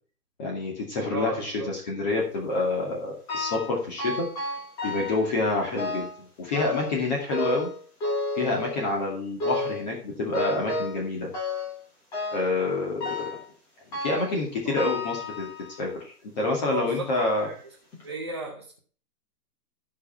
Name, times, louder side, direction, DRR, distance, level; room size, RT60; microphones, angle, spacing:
voice 1, 0.4-4.3 4.8-6.1 6.4-7.7 8.4-11.3 12.3-13.3 14.0-15.5 15.8-17.5, left 3 dB, 25° left, -1 dB, 2.3 m, -27 dB
voice 2, 1.1-1.7 14.7-14.8 16.7-17.6 18.0-18.8, right 3 dB, 20° right, -2 dB, 0.6 m, -34 dB
sound 1, 3.3-3.7 4.0-5.3 5.8-6.2 6.5-7.0 7.3-9.0 9.4-9.9 10.3-11.0 11.3-11.8 12.1-12.5 13.0-13.4 13.9-14.4 14.8-15.8 16.5-16.6 17.4-17.5 17.9-18.0, left 2 dB, 10° left, 1.2 m, -32 dB
13.5 x 5.7 x 4.4 m, 0.42 s
hypercardioid pair, 170°, 47 cm